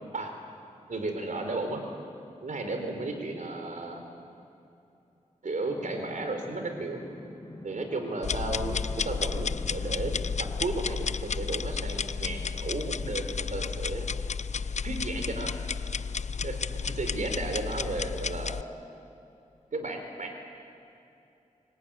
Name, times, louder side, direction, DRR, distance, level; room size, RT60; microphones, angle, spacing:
voice 1, 0.9-1.8 2.4-4.0 5.4-7.0 7.6-10.1 10.4-14.1 14.8-15.5 16.4-16.6 16.8-18.6 19.7-20.4, right 2 dB, 65° right, 4 dB, 4.2 m, -34 dB
sound 1, 5.7-10.7, left 1 dB, 25° left, 2.7 m, -45 dB
sound 2, 8.2-18.6, left 5 dB, 55° left, 0.6 m, -32 dB
24.0 x 19.5 x 9.1 m, 2.7 s
cardioid pair, 50°, 14 cm